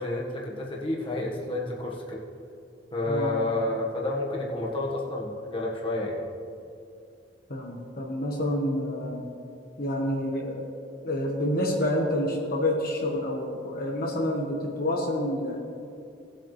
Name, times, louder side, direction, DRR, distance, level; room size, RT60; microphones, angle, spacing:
voice 1, 0.0-2.2 2.9-6.2, left 2 dB, 30° left, -4 dB, 1.5 m, -30 dB
voice 2, 3.1-3.6 7.5-9.2 9.8-10.6 11.0-15.6, left 1 dB, 55° left, -1 dB, 1.3 m, -28 dB
18.5 x 8.0 x 3.3 m, 2.6 s
head